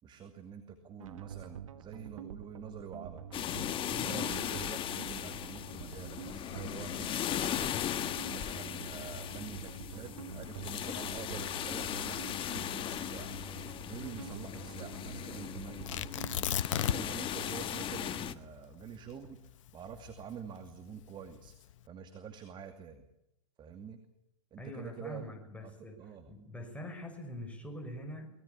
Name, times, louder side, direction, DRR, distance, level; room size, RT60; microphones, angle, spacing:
voice 1, 0.0-3.3 4.0-7.7 8.3-13.3 13.8-16.3 16.7-19.4 19.7-21.5 21.9-23.0 23.6-24.0 24.5-25.2 25.6-25.7 26.0-26.3, right 7 dB, 30° right, 7 dB, 2.5 m, -47 dB
sound 1, 1.0-16.4, right 9 dB, 80° right, 1.6 m, -47 dB
sound 2, 3.3-18.3, left 11 dB, 30° left, 1.5 m, -38 dB
voice 2, 3.9-4.3 24.6-26.0 26.3-28.3, equal, 10° left, 3 dB, 6.4 m, -44 dB
Tearing, 15.9-17.3 17.5-17.6 18.2-20.6 21.3-21.7, left 11 dB, 70° left, 1.0 m, -34 dB
24.0 x 20.5 x 7.2 m, 0.83 s
hypercardioid pair, 110°, 17 cm